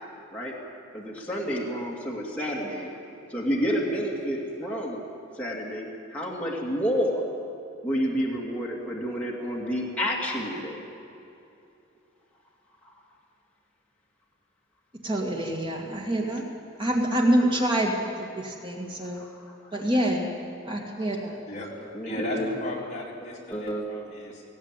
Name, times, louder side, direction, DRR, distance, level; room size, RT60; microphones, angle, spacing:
voice 1, 0.9-2.9 3.3-5.0 5.4-7.2 7.8-10.8 19.1-19.5 21.9-22.5 23.5-23.8, equal, 5° left, -4 dB, 2.5 m, -29 dB
voice 2, 15.0-16.4 16.8-17.9 18.2-19.2 19.7-20.3 20.7-21.4, right 1 dB, 25° right, 0 dB, 2.2 m, -26 dB
voice 3, 21.5-24.4, left 1 dB, 35° left, -3 dB, 3.6 m, -36 dB
18.0 x 17.0 x 9.1 m, 2.7 s
head